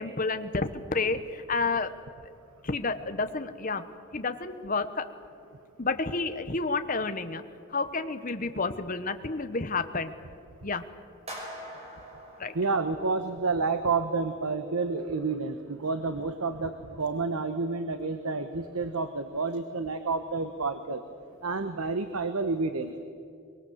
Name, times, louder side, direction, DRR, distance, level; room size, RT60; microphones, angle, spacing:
voice 1, 0.0-1.9 2.6-5.1 5.8-7.4 7.7-10.1 10.6-10.8 12.4-12.6, left 3 dB, 40° left, 9 dB, 1.1 m, -30 dB
sound 1, 11.3-13.5, equal, 30° right, 5.5 m, -43 dB
voice 2, 12.5-21.0 21.4-23.0, right 4 dB, 80° right, 9 dB, 1.1 m, -29 dB
23.5 x 22.0 x 8.0 m, 2.5 s
head